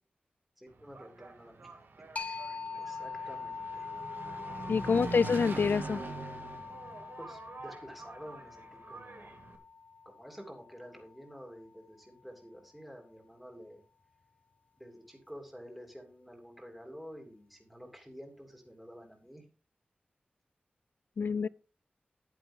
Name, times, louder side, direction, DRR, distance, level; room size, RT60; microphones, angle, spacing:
voice 1, 0.6-1.7 2.2-3.9 7.2-9.4 10.0-13.8 14.8-19.5 21.4-21.5, equal, ahead, 3.0 m, -50 dB
Engine, 0.7-9.6, right 3 dB, 85° right, 2.0 m, -44 dB
sound 1, 2.2-11.5, left 4 dB, 40° left, 1.2 m, -43 dB
voice 2, 4.7-6.0 21.2-21.5, left 5 dB, 65° left, 0.4 m, -27 dB
11.0 x 10.5 x 3.7 m
wide cardioid pair, 115°, 4 cm